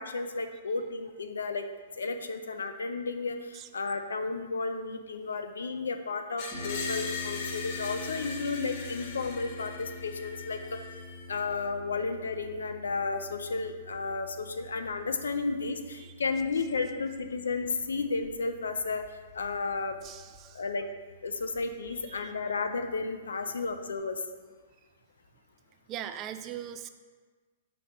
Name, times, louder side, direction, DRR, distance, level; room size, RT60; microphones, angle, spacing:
voice 1, 0.0-1.7 2.0-10.8 11.3-20.0 20.5-20.9 21.2-24.2, left 4 dB, 80° left, 7 dB, 0.5 m, -33 dB
Screech, 6.4-11.3, left 4 dB, 50° left, 0.8 m, -40 dB
Harp, 6.5-24.0, left 2 dB, 15° left, 1.6 m, -46 dB
voice 2, 20.0-20.6 21.9-22.3 25.9-26.9, right 10 dB, 30° right, 10 dB, 0.4 m, -41 dB
5.8 x 3.3 x 5.1 m, 1.4 s
hypercardioid pair, 120°, 0 cm